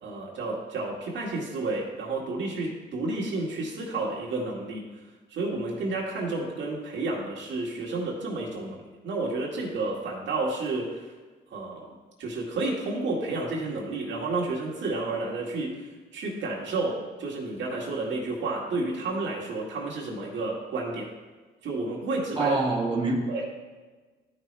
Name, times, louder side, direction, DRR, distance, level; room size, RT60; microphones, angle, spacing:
voice 1, 0.0-4.9 5.3-11.1 11.5-15.8 16.1-21.1 21.6-22.6 23.3-23.4, right 2 dB, 65° right, -3 dB, 2.0 m, -31 dB
voice 2, 22.4-23.4, right 2 dB, 25° right, -4 dB, 1.9 m, -26 dB
12.5 x 5.4 x 3.4 m, 1.3 s
cardioid pair, 90°, 20 cm